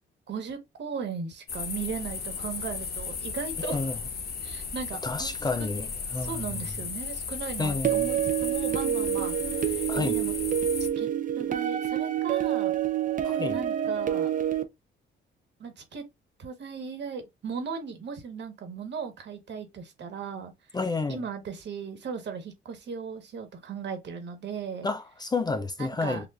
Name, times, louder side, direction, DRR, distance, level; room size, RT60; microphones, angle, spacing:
voice 1, 0.3-3.8 4.4-5.7 6.1-9.4 9.7-10.3 11.0-11.1 11.4-12.7 13.5-14.3 15.6-16.0 16.4-20.5 21.1-24.9 25.8-26.3, right 6 dB, 60° right, 1.4 m, -37 dB
sound 1, 1.5-10.9, left 5 dB, 50° left, 0.9 m, -35 dB
voice 2, 3.6-4.0 5.0-5.9 6.1-6.6 7.6-8.1 9.9-10.2 13.2-13.6 20.7-21.2 24.8-26.3, left 3 dB, 20° left, 0.5 m, -30 dB
sound 2, 7.8-14.6, right 11 dB, 40° right, 0.6 m, -27 dB
6.9 x 2.5 x 2.4 m
cardioid pair, 90°, 20 cm